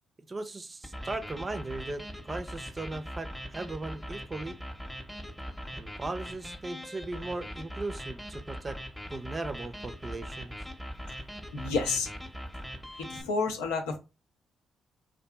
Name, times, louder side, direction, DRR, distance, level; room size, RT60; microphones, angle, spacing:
voice 1, 0.3-4.6 5.7-8.8 9.1-10.6, right 2 dB, 35° right, 0.4 m, -38 dB
sound 1, 0.8-13.2, equal, ahead, 0.7 m, -41 dB
voice 2, 11.5-12.1 13.1-14.0, left 4 dB, 85° left, 0.5 m, -30 dB
2.6 x 2.5 x 2.3 m
hypercardioid pair, 45°, 0 cm